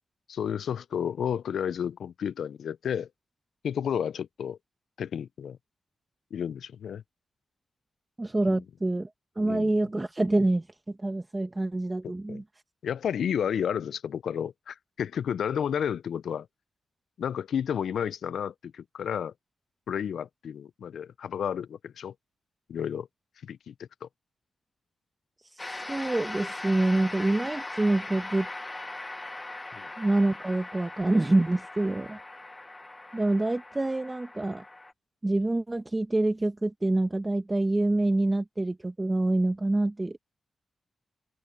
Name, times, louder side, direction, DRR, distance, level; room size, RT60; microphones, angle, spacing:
voice 1, 0.3-3.1 3.6-4.6 5.0-5.6 6.3-7.0 8.5-8.6 9.4-9.7 12.0-12.4 12.8-16.5 17.2-19.3 19.9-22.1 22.7-23.1 23.4-24.1 29.7-29.9, left 8 dB, 80° left, 0.4 m, -32 dB
voice 2, 8.2-9.1 9.4-12.4 25.6-28.5 30.0-32.2 33.1-34.6 35.2-40.3, right 2 dB, 25° right, 1.4 m, -26 dB
somehighnoise wash, 25.6-34.9, left 2 dB, 25° left, 1.0 m, -40 dB
cardioid pair, 55°, 0 cm